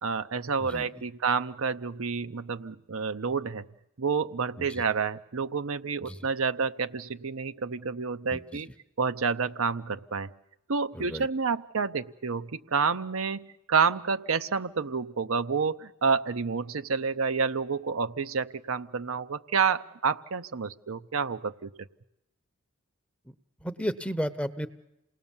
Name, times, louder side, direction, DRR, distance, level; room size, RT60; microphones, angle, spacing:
voice 1, 0.0-3.7 4.0-8.7 9.0-10.3 10.7-21.7, right 5 dB, 75° right, 10 dB, 0.8 m, -29 dB
voice 2, 10.9-11.3 23.3-23.4 23.6-24.7, equal, 5° left, 11 dB, 0.8 m, -33 dB
28.0 x 19.0 x 7.2 m, 0.88 s
head